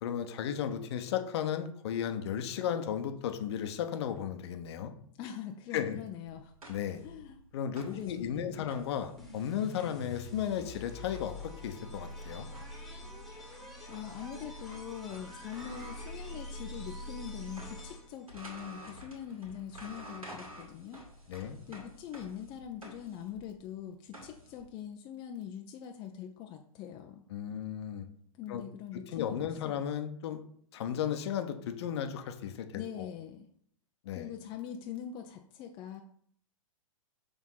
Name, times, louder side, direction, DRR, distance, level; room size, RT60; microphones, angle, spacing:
voice 1, 0.0-4.9 5.7-6.0 6.7-7.0 7.5-12.5 21.3-21.6 27.3-28.1 28.5-28.6 29.1-30.4 30.7-33.1 34.0-34.3, left 9 dB, 50° left, 8 dB, 0.8 m, -35 dB
voice 2, 5.2-6.5 7.0-7.4 7.8-8.7 13.9-21.0 21.7-27.2 28.4-29.8 32.7-33.5 34.1-36.0, left 9 dB, 25° left, 4 dB, 0.5 m, -43 dB
sound 1, 6.3-17.0 17.3-24.7, equal, 80° right, 2.3 m, -51 dB
sound 2, 9.2-18.3, left 1 dB, ahead, 1.5 m, -45 dB
6.2 x 3.5 x 5.6 m, 0.63 s
figure-of-eight pair, 105°, 18 cm